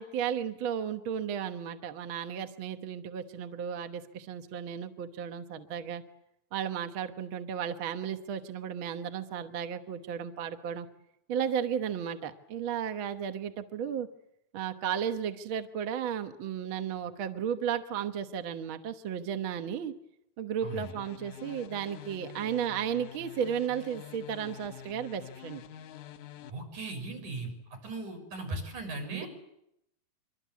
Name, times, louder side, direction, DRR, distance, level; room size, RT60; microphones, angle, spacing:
voice 1, 0.0-6.0 6.5-10.9 11.3-14.1 14.5-20.0 20.4-25.6 29.1-29.3, right 8 dB, 55° right, 8 dB, 1.7 m, -34 dB
sound 1, 20.7-26.5, left 9 dB, 90° left, 2.7 m, -47 dB
voice 2, 26.5-27.5 27.8-29.3, right 2 dB, 85° right, 5 dB, 7.8 m, -38 dB
25.0 x 24.0 x 8.4 m, 0.81 s
omnidirectional pair, 3.4 m